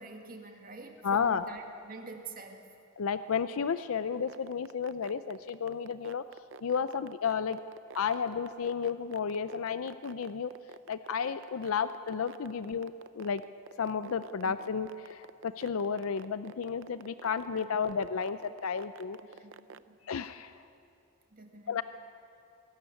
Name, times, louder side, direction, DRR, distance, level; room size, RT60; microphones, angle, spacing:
voice 1, 0.0-2.7 14.4-14.5 17.5-17.8 19.4-20.0 21.3-21.8, right 3 dB, 40° right, 3 dB, 2.0 m, -47 dB
voice 2, 1.0-1.5 3.0-6.2 6.6-7.6 7.9-10.5 10.9-13.4 13.8-19.2 20.0-20.6 21.7-21.8, left 6 dB, 75° left, 12 dB, 0.5 m, -32 dB
sound 1, 4.1-19.8, right 5 dB, 60° right, 0.6 m, -48 dB
22.5 x 13.5 x 9.6 m, 2.6 s
head